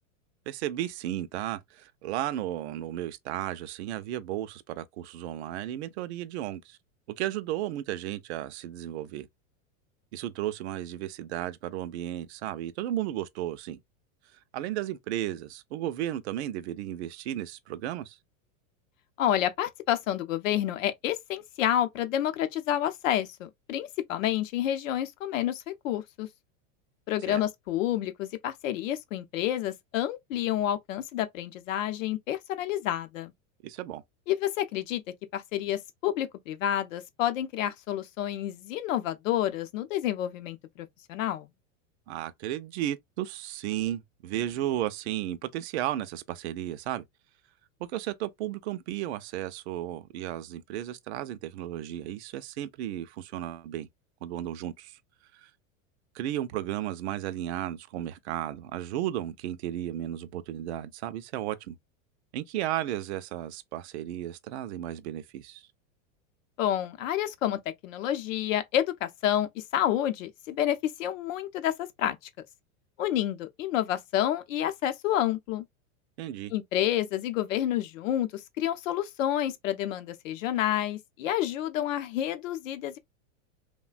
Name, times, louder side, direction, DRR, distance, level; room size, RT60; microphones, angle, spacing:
voice 1, 0.5-6.8 7.1-9.3 10.1-13.8 14.3-18.2 27.3-27.4 33.6-34.0 42.1-47.0 47.8-53.9 54.2-55.0 55.3-55.5 56.1-61.8 62.3-65.6 76.2-76.5, right 12 dB, 55° right, 0.4 m, -34 dB
voice 2, 19.2-26.3 27.1-33.3 34.3-35.0 35.3-41.5 66.6-72.2 73.0-75.6 76.5-83.0, left 11 dB, 75° left, 0.7 m, -29 dB
3.2 x 2.2 x 2.4 m
supercardioid pair, 175°, 39 cm